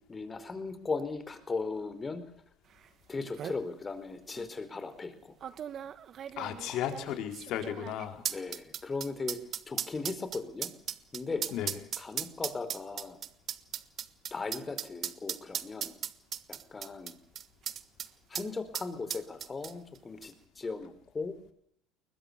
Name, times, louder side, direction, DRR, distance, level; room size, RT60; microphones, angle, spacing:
voice 1, 0.1-2.2 3.1-5.3 6.7-7.2 8.3-9.4 9.7-10.7 11.1-11.4 12.0-13.2 14.3-15.9 16.5-17.1 18.3-21.4, left 4 dB, 20° left, 11 dB, 4.5 m, -37 dB
sound 1, 2.8-2.9 3.2-3.6 4.4-4.5 5.4-18.1 18.3-18.5 18.7-20.0 20.2-20.3, right 9 dB, 45° right, 1.5 m, -37 dB
voice 2, 6.4-8.2 11.5-11.7, left 10 dB, 60° left, 6 dB, 4.5 m, -34 dB
21.5 x 20.5 x 7.0 m, 0.71 s
supercardioid pair, 95°, 0 cm